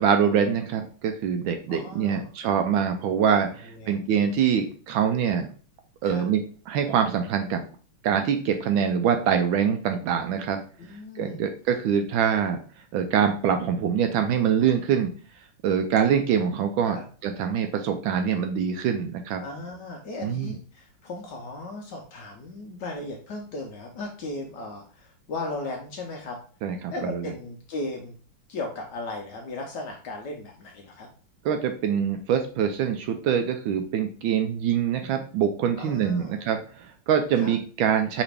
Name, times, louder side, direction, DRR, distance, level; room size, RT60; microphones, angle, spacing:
voice 1, 0.0-5.5 6.0-7.6 8.0-10.6 11.2-12.6 12.9-15.1 15.6-19.4 20.2-20.5 26.6-27.3 31.4-38.2, right 8 dB, 75° right, 6 dB, 1.2 m, -24 dB
voice 2, 1.7-2.3 3.7-4.2 6.0-6.2 10.8-11.4 16.9-17.0 19.4-26.4 26.9-28.1 28.5-31.1 35.8-36.4 37.4-37.5, left 2 dB, 70° left, 1 dB, 1.1 m, -36 dB
5.0 x 3.1 x 3.3 m, 0.40 s
omnidirectional pair, 2.4 m